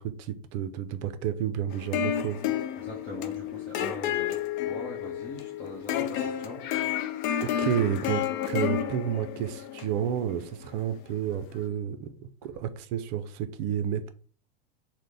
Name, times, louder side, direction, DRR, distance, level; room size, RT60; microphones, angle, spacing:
voice 1, 0.0-2.4 7.4-14.1, right 9 dB, 45° right, 0.5 m, -31 dB
sound 1, 1.7-11.0, left 10 dB, 55° left, 0.5 m, -31 dB
voice 2, 2.8-6.6 12.4-12.6, left 2 dB, 35° left, 0.9 m, -41 dB
4.0 x 2.1 x 3.3 m
supercardioid pair, 140°, 30 cm